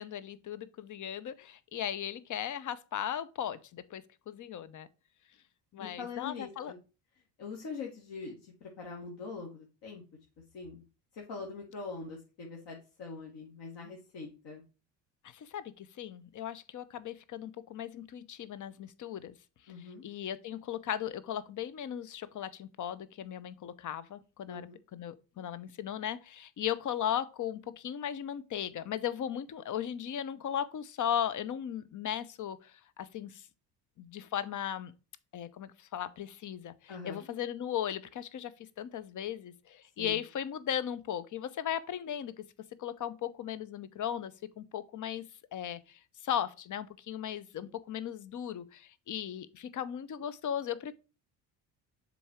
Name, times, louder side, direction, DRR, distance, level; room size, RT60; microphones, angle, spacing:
voice 1, 0.0-4.9 5.7-6.7 15.3-19.3 20.0-33.4 34.0-34.9 35.3-42.4 42.8-45.3 45.5-50.9, left 10 dB, 40° left, 0.8 m, -37 dB
voice 2, 5.8-6.8 7.4-10.0 10.5-10.8 11.1-14.6 19.7-20.0 24.5-24.8 36.9-37.3 40.0-40.2 47.6-47.7, left 4 dB, 60° left, 1.8 m, -43 dB
7.0 x 3.7 x 4.4 m
hypercardioid pair, 60°, 48 cm